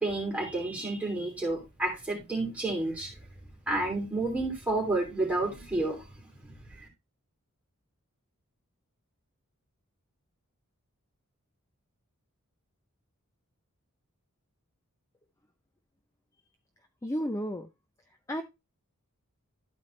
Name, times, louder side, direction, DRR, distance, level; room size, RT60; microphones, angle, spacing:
voice 1, 0.0-3.1 3.7-6.5 6.8-6.9, right 2 dB, 5° right, 2.9 m, -30 dB
voice 2, 17.0-17.7 18.3-18.4, equal, 15° left, 0.5 m, -32 dB
12.5 x 4.4 x 3.1 m
head